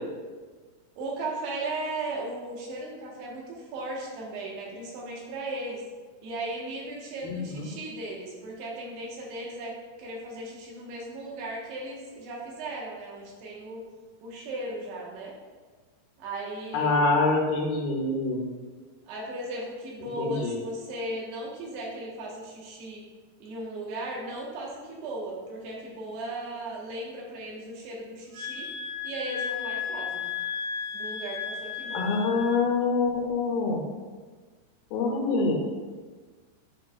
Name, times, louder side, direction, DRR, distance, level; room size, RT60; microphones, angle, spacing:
voice 1, 1.0-5.8 6.2-13.8 14.2-15.3 16.2-17.0 19.0-23.0 23.4-28.7 29.0-30.3 30.9-32.1, right 2 dB, 75° right, -3 dB, 3.2 m, -36 dB
voice 2, 7.2-7.7 16.7-18.5 20.2-20.6 31.9-33.8 34.9-35.5, left 3 dB, 80° left, -1 dB, 2.3 m, -25 dB
sound 1, 28.3-32.6, left 7 dB, 60° right, 2.7 m, -34 dB
11.0 x 4.7 x 2.3 m, 1.4 s
omnidirectional pair, 4.8 m